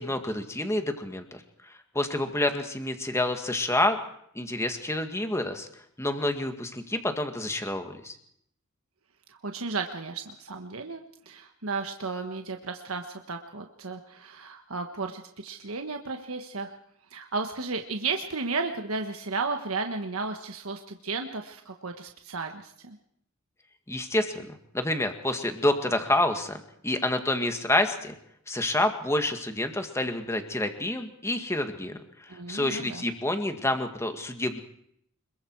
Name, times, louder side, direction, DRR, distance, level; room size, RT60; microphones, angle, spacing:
voice 1, 0.0-1.4 1.9-4.0 4.4-5.7 6.0-8.1 23.9-24.5 24.7-28.1 28.5-32.0 32.3-34.6, left 1 dB, 15° left, 6 dB, 2.0 m, -28 dB
voice 2, 9.3-16.7 17.1-23.0 32.3-33.0, right 4 dB, 75° right, 5 dB, 1.5 m, -34 dB
26.0 x 22.5 x 4.8 m, 0.70 s
head